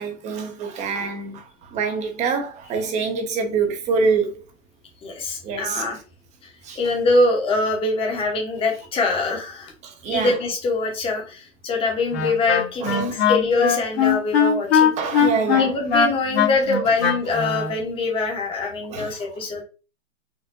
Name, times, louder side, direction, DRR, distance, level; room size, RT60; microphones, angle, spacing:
voice 1, 0.0-1.4 1.7-4.4 5.4-5.8 6.7-6.8 9.8-10.3 12.8-13.1 15.0-15.7 18.9-19.1, right 5 dB, 20° right, 0.7 m, -25 dB
voice 2, 5.0-6.0 6.8-9.7 10.1-14.9 15.5-19.6, left 3 dB, 15° left, 1.0 m, -23 dB
Wind instrument woodwind instrument, 12.1-17.7, left 6 dB, 55° left, 1.4 m, -19 dB
4.4 x 2.6 x 2.6 m
hypercardioid pair, 130°, 38 cm